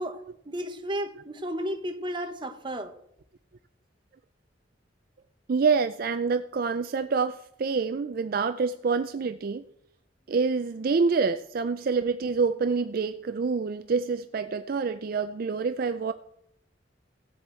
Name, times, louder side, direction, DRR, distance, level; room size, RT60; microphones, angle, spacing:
voice 1, 0.0-2.9, equal, 25° right, 0.9 m, -33 dB
voice 2, 5.5-9.6 10.3-16.1, right 5 dB, 50° right, 0.4 m, -27 dB
16.5 x 7.8 x 4.4 m
head